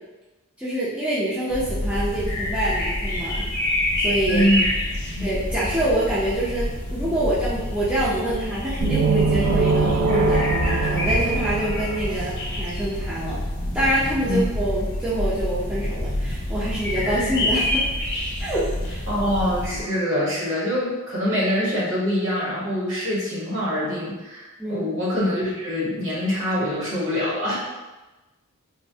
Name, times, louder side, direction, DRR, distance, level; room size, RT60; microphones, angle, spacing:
voice 1, 0.6-3.4 4.0-4.5 5.2-13.4 13.7-17.8 18.4-19.0 24.6-24.9, right 1 dB, 5° right, -10 dB, 0.4 m, -26 dB
sound 1, 1.5-19.8, left 1 dB, 45° left, 0.8 m, -27 dB
voice 2, 4.3-4.6 5.0-5.3 14.2-14.4 19.1-27.5, left 1 dB, 55° right, -7 dB, 1.1 m, -24 dB
sound 2, 8.8-12.6, right 4 dB, 85° right, 0.3 m, -23 dB
3.0 x 2.0 x 2.6 m, 1.1 s
head